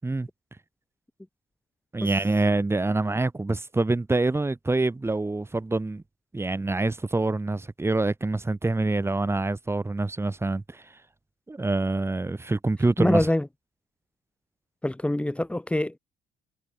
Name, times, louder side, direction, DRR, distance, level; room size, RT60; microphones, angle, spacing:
voice 1, 1.9-6.0 6.3-10.8 11.5-13.3, right 2 dB, 15° right, 6.1 m, -26 dB
voice 2, 13.0-13.5 14.8-16.0, left 1 dB, 5° left, 4.4 m, -24 dB
cardioid pair, 110°, 17 cm